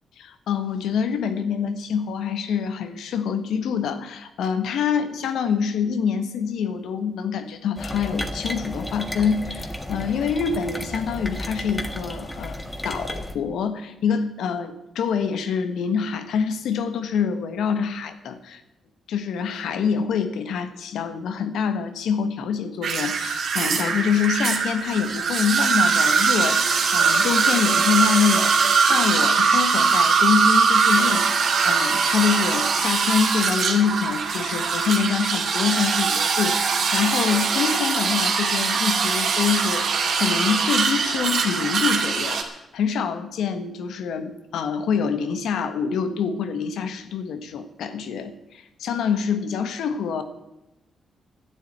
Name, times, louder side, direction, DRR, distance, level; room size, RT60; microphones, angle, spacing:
voice 1, 0.2-18.6 19.1-28.5 28.8-42.4 42.7-50.2, left 6 dB, 85° left, 9 dB, 1.5 m, -26 dB
sound 1, 7.8-13.4, left 1 dB, 15° left, 1.7 m, -33 dB
sound 2, 22.8-42.4, right 5 dB, 70° right, 2.3 m, -21 dB
11.5 x 9.6 x 8.9 m, 0.92 s
cardioid pair, 75°, 0 cm